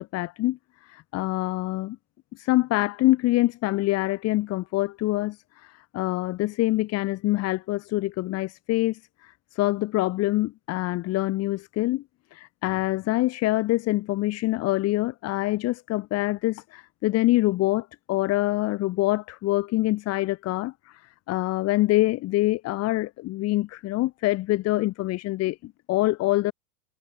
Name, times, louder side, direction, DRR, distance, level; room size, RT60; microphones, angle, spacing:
voice 1, 0.1-0.6 0.9-2.0 2.3-12.0 12.3-21.0 21.3-26.5, left 18 dB, 35° left, 3.6 m, -25 dB
supercardioid pair, 135°, 43 cm